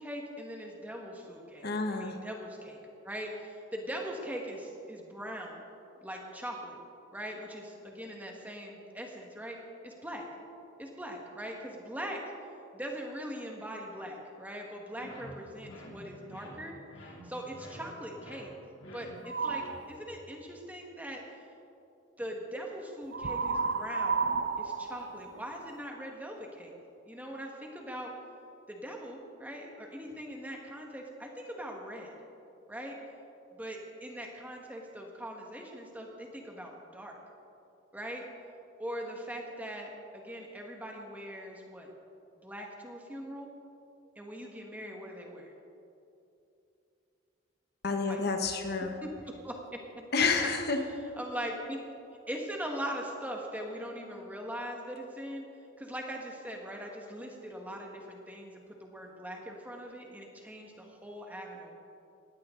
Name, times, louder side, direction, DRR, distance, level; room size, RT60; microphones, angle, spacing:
voice 1, 0.0-2.8 3.0-5.6 6.0-6.8 7.1-9.6 9.8-10.3 10.8-12.2 12.7-16.8 17.2-18.5 18.9-21.2 22.2-24.3 24.6-26.7 27.1-28.1 28.7-32.1 32.7-33.0 33.5-37.2 37.9-38.3 38.8-41.9 42.4-43.5 44.2-45.5 48.0-48.2 49.0-49.1 49.4-49.5 50.4-50.5 51.2-51.8 52.3-55.5 55.8-61.7, equal, 10° right, 0 dB, 1.7 m, -41 dB
voice 2, 1.6-2.2 47.8-48.9 50.1-50.8, left 4 dB, 50° left, 4 dB, 1.3 m, -29 dB
sound 1, 15.0-20.1, equal, 85° left, 3.3 m, -49 dB
sound 2, 19.2-19.8 23.1-25.9, right 5 dB, 60° right, 0.7 m, -32 dB
20.0 x 15.5 x 3.9 m, 2.7 s
head